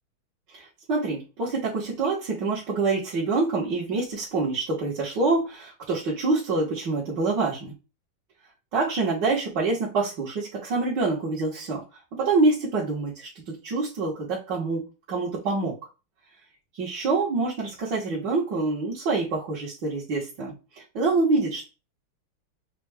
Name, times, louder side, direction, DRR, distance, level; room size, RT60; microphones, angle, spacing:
voice 1, 0.5-7.7 8.7-11.8 12.1-15.8 16.7-21.6, right 3 dB, 60° right, -7 dB, 1.9 m, -26 dB
5.9 x 2.4 x 3.4 m, 0.30 s
omnidirectional pair, 2.3 m